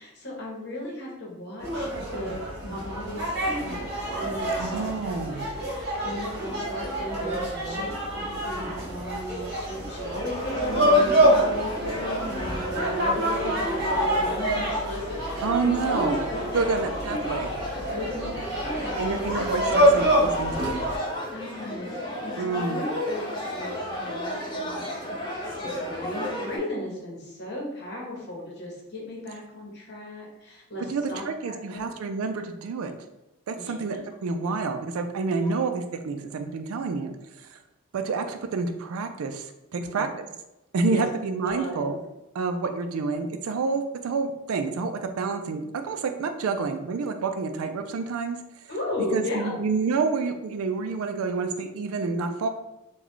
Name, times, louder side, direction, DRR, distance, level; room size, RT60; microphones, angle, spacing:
voice 1, 0.0-16.6 17.1-17.3 17.7-19.2 21.3-31.9 33.6-34.0 35.4-35.6 39.7-40.0 40.9-41.0 41.4-41.9 48.7-49.5, left 1 dB, 50° left, -3 dB, 1.0 m, -36 dB
sound 1, 1.6-21.0, equal, 50° right, 1.0 m, -27 dB
voice 2, 4.6-5.5 15.4-16.3 16.5-17.5 19.0-20.9 22.4-22.8 30.9-32.9 33.5-37.6 37.9-40.3 40.7-42.0 42.3-48.4 49.1-52.5, right 4 dB, 85° right, 7 dB, 0.4 m, -28 dB
sound 2, 9.9-26.6, left 1 dB, 20° left, 0.6 m, -33 dB
3.8 x 2.3 x 3.1 m, 0.93 s
head